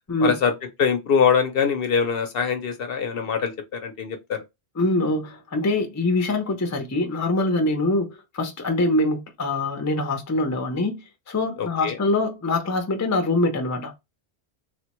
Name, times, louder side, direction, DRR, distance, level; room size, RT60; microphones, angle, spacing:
voice 1, 0.2-0.5 0.8-4.4 11.6-12.0, left 6 dB, 65° left, 0.7 m, -23 dB
voice 2, 4.8-11.0 11.3-13.9, left 2 dB, 25° left, 0.4 m, -24 dB
3.4 x 2.1 x 2.9 m
omnidirectional pair, 1.2 m